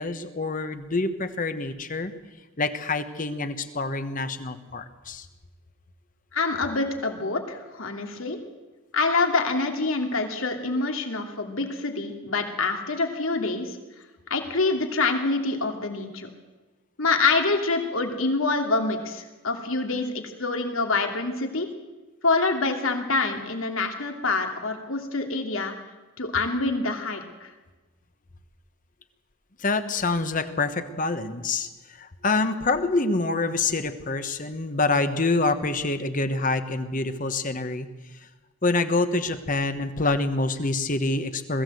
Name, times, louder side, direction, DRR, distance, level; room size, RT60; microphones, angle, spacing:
voice 1, 0.0-2.1 2.6-5.3 29.6-37.9 38.6-41.6, left 3 dB, 40° left, 9 dB, 1.3 m, -26 dB
voice 2, 6.3-8.4 8.9-13.8 14.3-16.3 17.0-21.7 22.2-25.7 26.2-27.5, left 3 dB, 80° left, 4 dB, 2.7 m, -26 dB
21.5 x 15.5 x 7.8 m, 1.2 s
head